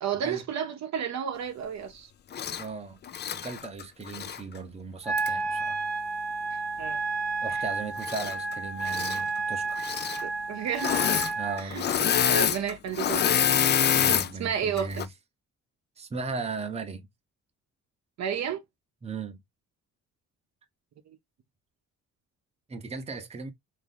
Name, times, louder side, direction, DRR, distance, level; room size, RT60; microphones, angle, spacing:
voice 1, 0.0-2.1 6.5-7.0 7.5-7.6 10.2-10.9 11.6-13.7 14.4-14.9 18.2-18.6 21.1-21.2, right 8 dB, 65° right, 0.8 m, -32 dB
Engine / Mechanisms, 2.3-2.6 3.1-4.4 5.2-5.3 8.0-8.5 8.8-9.2 9.8-10.2 10.7-11.3 11.6-14.3 14.8-15.1, left 9 dB, 35° left, 0.4 m, -26 dB
voice 2, 2.6-3.0 3.3-5.8 7.4-9.8 11.4-12.0 13.9-15.1 16.0-17.1 19.0-19.4 22.7-23.5, right 4 dB, 20° right, 0.7 m, -37 dB
Wind instrument woodwind instrument, 5.0-11.6, right 4 dB, ahead, 1.0 m, -31 dB
3.0 x 2.7 x 3.6 m
cardioid pair, 90°, 30 cm